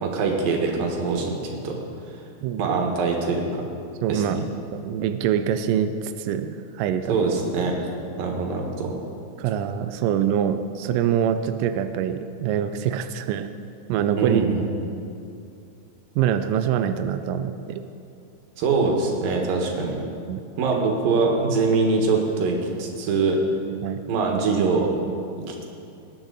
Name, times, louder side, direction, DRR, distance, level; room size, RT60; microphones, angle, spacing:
voice 1, 0.0-1.8 2.6-3.7 4.1-4.4 7.1-8.9 14.1-14.7 18.6-20.0 20.6-23.4 24.1-24.9 25.5-25.6, right 4 dB, 70° right, 1 dB, 3.1 m, -23 dB
voice 2, 2.4-2.8 4.0-4.4 4.7-7.2 9.4-13.5 13.9-14.4 16.2-17.8 20.3-20.4 23.8-24.0, right 9 dB, 85° right, 9 dB, 1.9 m, -24 dB
19.5 x 10.5 x 4.0 m, 2.6 s
omnidirectional pair, 4.4 m